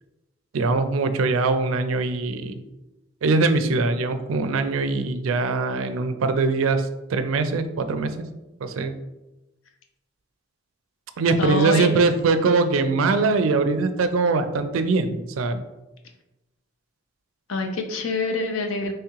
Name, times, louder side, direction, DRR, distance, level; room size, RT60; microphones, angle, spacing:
voice 1, 0.5-2.6 3.2-8.3 8.6-8.9 11.2-15.6, right 3 dB, 90° right, 9 dB, 0.4 m, -22 dB
voice 2, 11.4-11.9 17.5-18.9, left 3 dB, 80° left, 4 dB, 0.6 m, -25 dB
3.5 x 3.2 x 3.0 m, 1.0 s
head